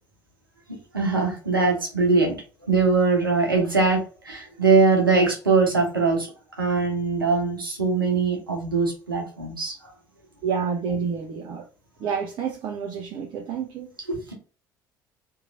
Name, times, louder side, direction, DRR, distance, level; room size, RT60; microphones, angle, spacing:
voice 1, 0.9-6.3 6.6-9.9 14.1-14.3, right 4 dB, 85° right, 0.9 m, -22 dB
voice 2, 10.4-11.7 12.0-13.9, right 6 dB, 45° right, 0.7 m, -29 dB
3.0 x 2.8 x 2.4 m
figure-of-eight pair, 60°, 11 cm